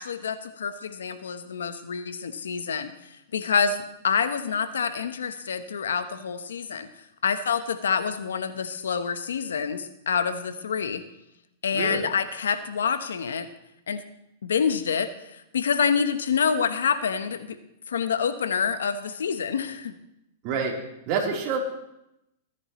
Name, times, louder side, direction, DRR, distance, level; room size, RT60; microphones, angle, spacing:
voice 1, 0.0-2.9 3.3-6.9 7.2-11.0 11.6-13.5 13.9-14.0 14.4-17.6 17.9-19.9, left 6 dB, 90° left, 10 dB, 1.1 m, -27 dB
voice 2, 11.7-12.0 20.4-20.7 21.1-21.6, right 5 dB, 45° right, -1 dB, 3.6 m, -27 dB
20.5 x 9.9 x 3.1 m, 0.85 s
hypercardioid pair, 125°, 0 cm